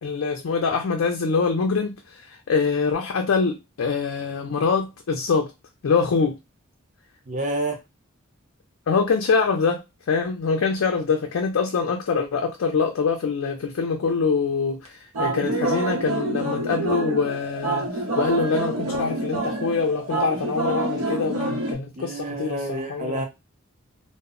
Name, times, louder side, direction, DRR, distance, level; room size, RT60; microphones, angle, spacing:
voice 1, 0.0-5.5 5.8-6.4 8.9-23.3, left 5 dB, 85° left, 0.4 m, -24 dB
voice 2, 7.3-7.8 21.9-23.3, right 2 dB, 35° right, 0.6 m, -29 dB
sound 1, 14.9-15.0 15.1-21.7, right 2 dB, 90° right, 0.7 m, -27 dB
2.1 x 2.0 x 3.6 m
head